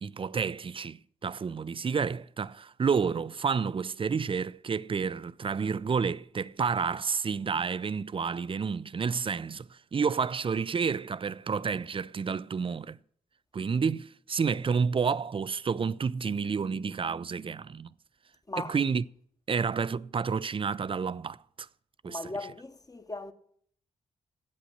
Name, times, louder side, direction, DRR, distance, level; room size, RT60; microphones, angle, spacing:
voice 1, 0.0-13.0 13.5-17.9 18.7-19.0 19.5-21.7 22.0-22.2, right 5 dB, 35° right, 0.4 m, -30 dB
voice 2, 18.5-18.8 22.0-23.3, left 2 dB, 20° left, 1.1 m, -38 dB
8.5 x 7.8 x 7.8 m
hypercardioid pair, 40°, 16 cm